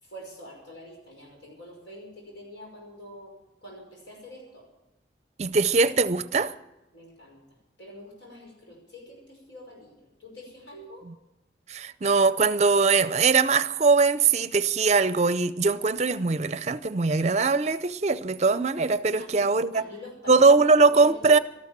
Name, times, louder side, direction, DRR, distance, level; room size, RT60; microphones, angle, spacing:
voice 1, 0.0-4.7 6.9-7.4 7.8-9.9 10.2-11.1 19.2-21.4, left 1 dB, 80° left, 5.5 m, -46 dB
voice 2, 5.4-6.5 11.7-19.8 20.3-21.4, right 4 dB, 40° right, 0.5 m, -21 dB
13.0 x 12.5 x 7.3 m
head